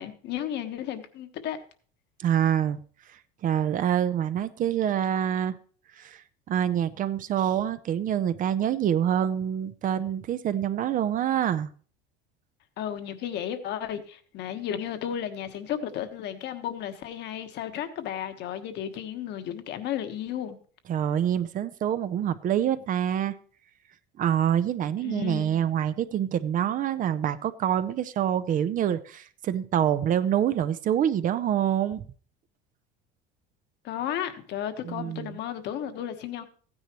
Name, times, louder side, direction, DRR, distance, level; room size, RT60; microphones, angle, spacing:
voice 1, 0.0-1.6 12.8-20.6 25.0-25.5 33.8-36.4, left 10 dB, 55° left, 1.4 m, -33 dB
voice 2, 2.2-2.8 3.4-5.5 6.0-6.2 6.5-11.7 20.9-23.4 24.2-32.0 34.8-35.4, right 10 dB, 40° right, 0.7 m, -26 dB
14.5 x 9.8 x 3.0 m
cardioid pair, 130°, 21 cm